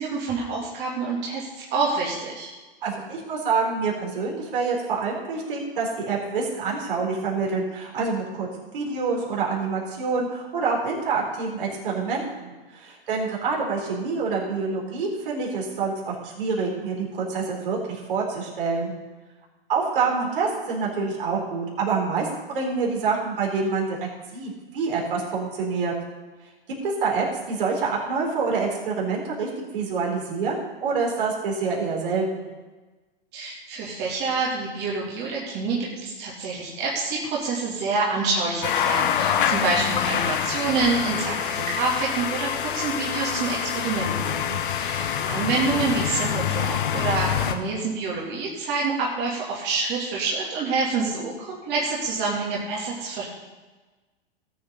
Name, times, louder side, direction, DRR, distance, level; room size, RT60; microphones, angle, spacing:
voice 1, 0.0-2.5 33.3-44.4 44.6-53.2, right 4 dB, 35° right, -4 dB, 2.9 m, -27 dB
voice 2, 2.8-18.9 19.7-25.9 26.8-32.5 44.4-44.6, right 4 dB, 60° right, -2 dB, 4.0 m, -27 dB
sound 1, 38.6-47.5, left 9 dB, 60° left, 1.1 m, -26 dB
19.0 x 7.9 x 4.0 m, 1.2 s
figure-of-eight pair, 100°, 29 cm